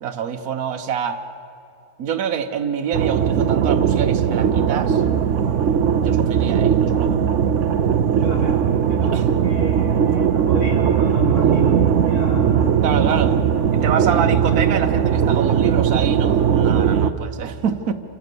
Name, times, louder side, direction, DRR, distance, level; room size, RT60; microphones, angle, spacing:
voice 1, 0.0-1.2 2.0-5.0 5.9-7.2 9.0-9.2 12.8-13.4 13.7-17.9, right 7 dB, 80° right, 4 dB, 1.4 m, -26 dB
sound 1, 2.9-17.1, right 8 dB, 60° right, 1.0 m, -18 dB
voice 2, 8.2-12.7, left 2 dB, 85° left, -3 dB, 6.0 m, -33 dB
29.0 x 26.0 x 6.8 m, 2.7 s
omnidirectional pair, 1.6 m